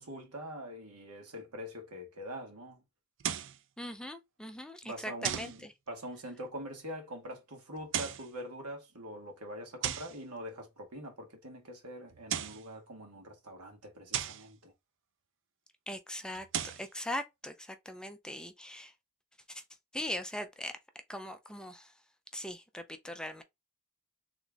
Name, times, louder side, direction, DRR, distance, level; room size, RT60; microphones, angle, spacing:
voice 1, 0.0-2.8 4.8-14.7, equal, 90° right, 1.9 m, -44 dB
sound 1, 3.2-3.6 5.2-5.6 7.8-8.3 9.8-10.2 12.1-12.7 14.1-14.5 16.3-16.9, right 9 dB, 60° right, 0.5 m, -35 dB
voice 2, 3.8-5.7 15.9-16.5 16.8-18.9 19.5-19.6 19.9-20.7 21.1-21.9 22.3-23.4, left 1 dB, 5° left, 0.5 m, -40 dB
3.7 x 3.6 x 3.4 m
head